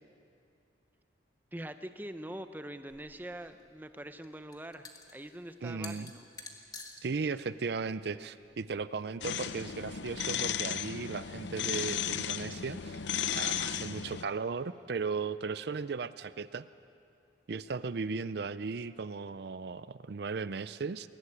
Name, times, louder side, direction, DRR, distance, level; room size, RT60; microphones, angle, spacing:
voice 1, 1.5-6.3, right 1 dB, 10° right, 9 dB, 0.7 m, -44 dB
sound 1, 2.9-9.0, left 3 dB, 20° left, 1.8 m, -51 dB
voice 2, 5.6-6.1 7.0-13.1 13.3-16.7 17.5-21.1, right 4 dB, 60° right, 14 dB, 0.5 m, -36 dB
sound 2, 9.2-14.2, left 8 dB, 70° left, 0.6 m, -35 dB
22.0 x 16.5 x 9.8 m, 2.6 s
head